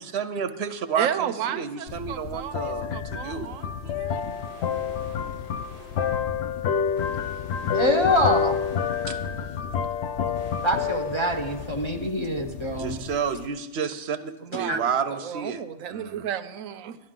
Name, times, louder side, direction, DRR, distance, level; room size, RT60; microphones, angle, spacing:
voice 1, 0.0-3.5 9.1-9.2 12.8-15.6 15.9-16.4, right 7 dB, 60° right, 11 dB, 0.8 m, -30 dB
voice 2, 1.0-4.2 14.4-17.0, right 10 dB, 90° right, 12 dB, 1.0 m, -33 dB
sound 1, 1.9-13.5, left 7 dB, 65° left, 0.8 m, -29 dB
sound 2, 4.1-6.3 7.0-9.5 10.4-12.0 12.7-12.8, equal, 90° left, 5.4 m, -50 dB
voice 3, 7.7-8.6 10.6-13.0 14.5-14.8, left 1 dB, 30° left, 3 dB, 0.6 m, -25 dB
12.0 x 11.5 x 3.7 m, 1.0 s
omnidirectional pair, 1.4 m